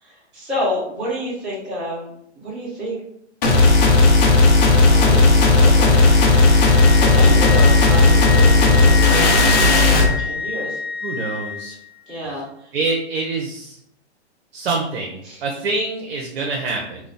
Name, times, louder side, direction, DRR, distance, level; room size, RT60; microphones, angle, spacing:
voice 1, 0.0-2.1 2.4-3.0 4.6-6.0 7.0-10.8 12.1-12.7 15.2-15.4, equal, ahead, -11 dB, 0.4 m, -29 dB
sound 1, 3.4-10.1, left 3 dB, 40° left, 0.6 m, -13 dB
Wind instrument woodwind instrument, 5.8-11.8, left 4 dB, 55° left, 0.9 m, -28 dB
voice 2, 11.0-11.8 12.7-13.8 14.5-17.0, right 3 dB, 60° right, 0 dB, 0.6 m, -25 dB
2.4 x 2.1 x 3.8 m, 0.73 s
hypercardioid pair, 150°, 35 cm